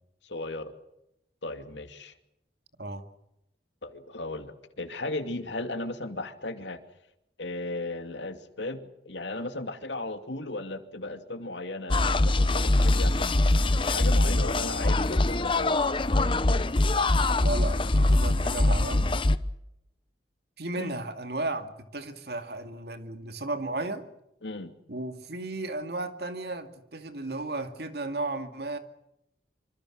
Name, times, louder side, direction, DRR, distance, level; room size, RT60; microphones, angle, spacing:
voice 1, 0.2-0.7 1.4-2.1 3.8-6.8 7.4-13.4 13.8-15.8 20.7-21.0 24.4-24.7, left 2 dB, 85° left, 7 dB, 2.5 m, -36 dB
sound 1, 11.9-19.4, left 2 dB, 30° left, 0.8 m, -23 dB
voice 2, 17.4-19.1 20.6-24.0 24.9-28.8, right 2 dB, 60° right, 7 dB, 2.3 m, -34 dB
25.5 x 25.0 x 6.4 m, 0.85 s
head